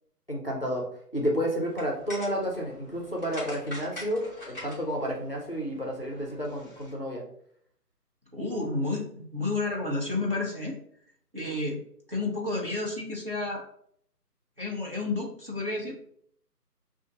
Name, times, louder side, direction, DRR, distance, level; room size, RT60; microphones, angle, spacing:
voice 1, 0.3-0.8 1.1-7.2, equal, 40° left, -1 dB, 0.5 m, -31 dB
sound 1, 1.6-6.9, left 1 dB, 10° right, 0.9 m, -45 dB
voice 2, 8.3-10.8 11.3-11.8 12.1-13.6 14.6-16.0, left 2 dB, 35° right, -3 dB, 0.6 m, -31 dB
5.0 x 2.5 x 2.5 m, 0.66 s
figure-of-eight pair, 160°, 48 cm